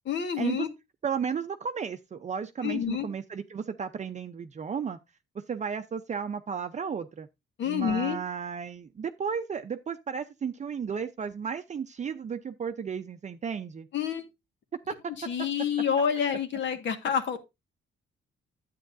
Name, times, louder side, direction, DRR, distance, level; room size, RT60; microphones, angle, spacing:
voice 1, 0.0-0.7 2.6-3.1 7.6-8.2 13.9-14.2 15.2-17.4, left 8 dB, 65° left, 1.6 m, -28 dB
voice 2, 1.0-5.0 5.3-7.3 7.7-13.9 14.9-15.0, right 6 dB, 35° right, 0.6 m, -34 dB
10.0 x 8.3 x 2.6 m
cardioid pair, 90°, 20 cm